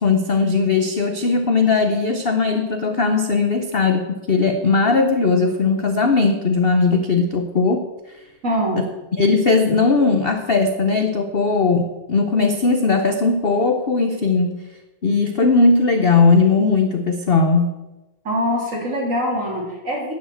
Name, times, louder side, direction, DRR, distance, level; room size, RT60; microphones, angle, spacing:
voice 1, 0.0-7.9 9.2-14.6 15.0-17.8, left 4 dB, 60° left, 7 dB, 0.6 m, -18 dB
voice 2, 8.4-8.8 18.2-20.1, equal, 40° right, -3 dB, 3.9 m, -23 dB
11.0 x 7.3 x 7.7 m, 1.1 s
omnidirectional pair, 2.1 m